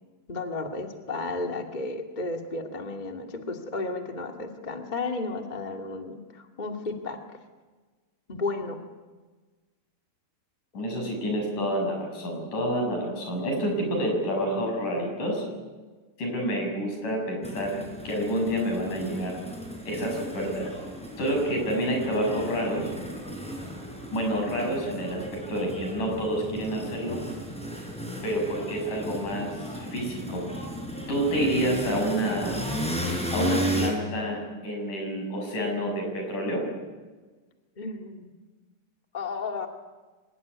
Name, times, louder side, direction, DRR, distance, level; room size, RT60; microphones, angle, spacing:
voice 1, 0.3-7.2 8.3-8.8 37.8-38.3 39.1-39.7, left 3 dB, 20° left, 4 dB, 1.3 m, -33 dB
voice 2, 10.7-15.4 16.2-19.3 19.8-20.7 21.2-22.9 24.1-25.2 25.5-27.2 28.2-30.4 31.1-32.6 33.3-36.6, equal, 60° left, 2 dB, 8.3 m, -28 dB
sound 1, 17.4-33.9, equal, ahead, 5.8 m, -35 dB
24.5 x 19.5 x 9.6 m, 1.3 s
omnidirectional pair, 4.2 m